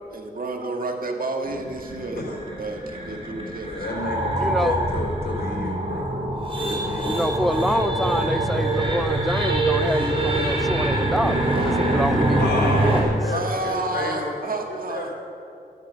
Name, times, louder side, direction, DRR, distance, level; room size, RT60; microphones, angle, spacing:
voice 1, 0.1-3.8 13.3-15.1, right 2 dB, 55° right, 3 dB, 1.8 m, -30 dB
sound 1, 1.4-13.0, right 1 dB, 30° right, 3.8 m, -24 dB
voice 2, 3.6-6.1 6.6-7.1 12.4-14.3 14.9-15.1, left 2 dB, 70° left, -2 dB, 3.7 m, -31 dB
voice 3, 4.4-4.8 7.1-13.1, equal, ahead, 15 dB, 0.4 m, -27 dB
12.5 x 12.0 x 5.7 m, 2.7 s
cardioid pair, 55°, 17 cm